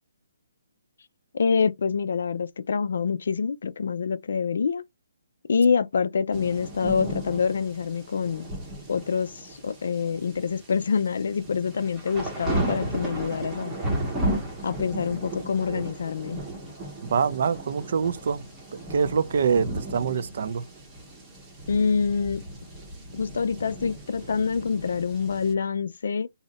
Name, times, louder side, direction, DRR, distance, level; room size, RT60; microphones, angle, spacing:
voice 1, 1.3-4.8 5.5-8.5 8.9-13.7 14.6-16.4 21.7-22.4 23.1-26.3, left 5 dB, 65° left, 0.3 m, -26 dB
sound 1, 6.3-25.5, right 1 dB, 10° right, 0.7 m, -35 dB
voice 2, 17.0-18.4 18.7-20.6, right 6 dB, 50° right, 0.3 m, -25 dB
2.7 x 2.0 x 3.9 m
hypercardioid pair, 165°, 0 cm